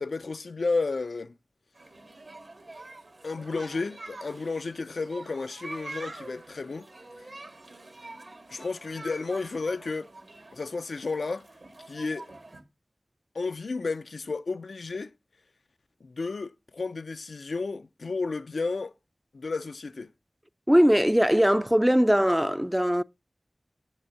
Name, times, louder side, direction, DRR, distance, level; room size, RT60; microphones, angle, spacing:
voice 1, 0.0-1.3 3.2-6.9 8.5-10.1 10.5-11.5 11.9-12.3 13.3-15.1 16.0-18.9 19.3-20.1, left 3 dB, 90° left, 0.4 m, -32 dB
sound 1, 1.7-12.6, right 2 dB, 70° right, 1.8 m, -46 dB
voice 2, 20.7-23.0, equal, 10° right, 0.3 m, -21 dB
8.1 x 3.4 x 6.4 m
wide cardioid pair, 45°, 0 cm